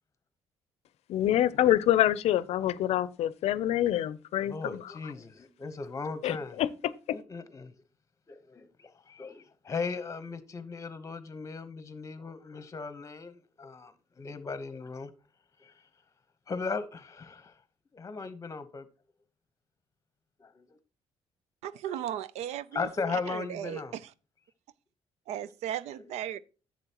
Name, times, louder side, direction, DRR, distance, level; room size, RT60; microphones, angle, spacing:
voice 1, 1.1-4.9 6.2-7.2, left 12 dB, 75° left, 0.5 m, -26 dB
voice 2, 4.4-6.6 7.1-7.7 8.3-15.1 15.6-15.7 16.5-17.5 17.9-18.9 20.4-20.7 21.8-22.0 22.7-23.9, left 4 dB, 30° left, 1.0 m, -37 dB
voice 3, 21.6-24.1 25.3-26.4, right 11 dB, 80° right, 0.5 m, -36 dB
10.5 x 7.6 x 2.9 m
cardioid pair, 110°, 11 cm